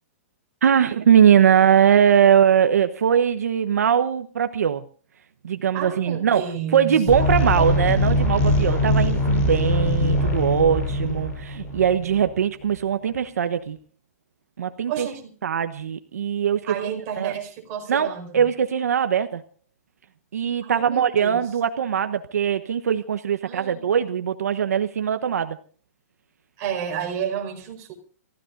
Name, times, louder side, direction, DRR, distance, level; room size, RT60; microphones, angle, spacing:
voice 1, 0.6-4.8 5.4-6.5 6.7-13.8 14.6-15.1 15.4-16.9 17.2-17.3 17.9-19.4 20.3-25.6, right 8 dB, 85° right, 9 dB, 1.2 m, -21 dB
voice 2, 5.7-7.8 14.9-15.3 16.6-18.5 20.6-21.4 23.5-23.8 26.6-27.9, right 8 dB, 30° right, 1 dB, 4.9 m, -31 dB
sound 1, 7.1-12.3, left 1 dB, 20° left, 7.9 m, -22 dB
29.5 x 15.5 x 2.6 m, 0.40 s
hypercardioid pair, 160°, 8 cm